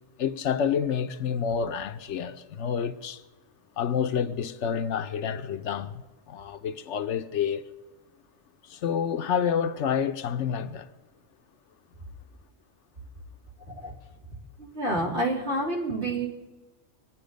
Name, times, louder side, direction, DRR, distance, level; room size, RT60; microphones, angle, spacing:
voice 1, 0.2-3.2 3.8-7.6 8.7-10.9, left 7 dB, 75° left, 1.0 m, -28 dB
voice 2, 14.6-16.3, right 1 dB, 65° right, 3.2 m, -28 dB
24.5 x 9.3 x 5.2 m
omnidirectional pair, 1.2 m